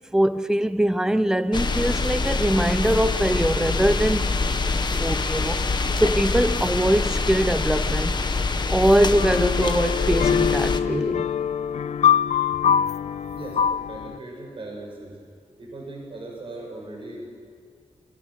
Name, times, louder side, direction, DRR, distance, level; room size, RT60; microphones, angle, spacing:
voice 1, 0.1-4.3 5.0-8.2 8.7-11.3, right 1 dB, 5° right, 0.8 m, -22 dB
sound 1, 1.5-10.8, left 3 dB, 40° left, 1.3 m, -25 dB
sound 2, 9.2-14.2, left 8 dB, 80° left, 0.5 m, -23 dB
voice 2, 13.3-15.2 15.6-17.2, right 2 dB, 50° right, 7.0 m, -38 dB
29.5 x 25.5 x 6.6 m
wide cardioid pair, 135°, 11 cm